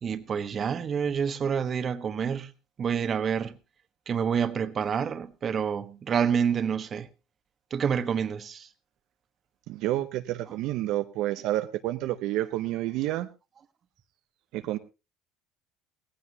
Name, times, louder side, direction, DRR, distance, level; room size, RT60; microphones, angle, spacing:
voice 1, 0.0-2.5 2.8-3.5 4.1-7.1 7.7-8.7, right 7 dB, 40° right, 1.2 m, -28 dB
voice 2, 9.7-13.3 14.5-14.8, right 15 dB, 70° right, 0.8 m, -29 dB
17.0 x 15.5 x 2.9 m
supercardioid pair, 95°, 0 cm